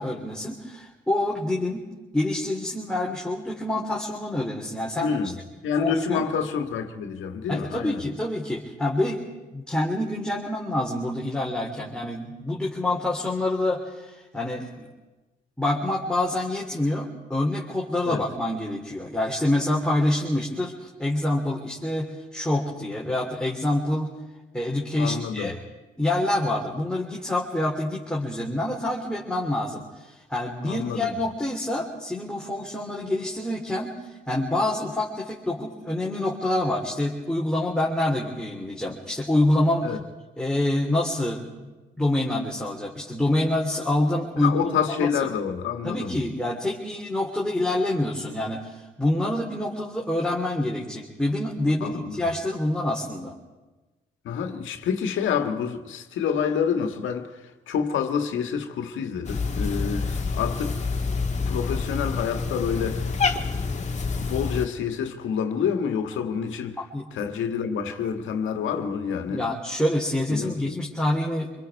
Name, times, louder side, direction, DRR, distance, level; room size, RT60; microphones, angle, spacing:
voice 1, 0.0-1.8 2.1-5.1 5.8-6.2 7.5-9.2 9.5-14.9 15.6-24.1 24.5-25.6 26.0-34.0 34.3-39.9 40.4-44.6 45.0-45.1 45.8-53.3 66.9-67.0 69.3-71.5, left 1 dB, 5° left, 3.2 m, -26 dB
voice 2, 5.0-5.4 5.6-8.1 18.1-18.2 25.0-25.6 30.6-31.1 39.8-40.0 44.4-46.2 51.8-52.2 54.2-60.8 61.0-61.1 61.5-63.1 64.1-66.8 67.1-69.5 70.3-70.8, left 7 dB, 80° left, 1.7 m, -28 dB
Cat, 59.2-64.7, left 4 dB, 35° left, 1.8 m, -27 dB
26.5 x 22.0 x 4.7 m
cardioid pair, 90°, 20 cm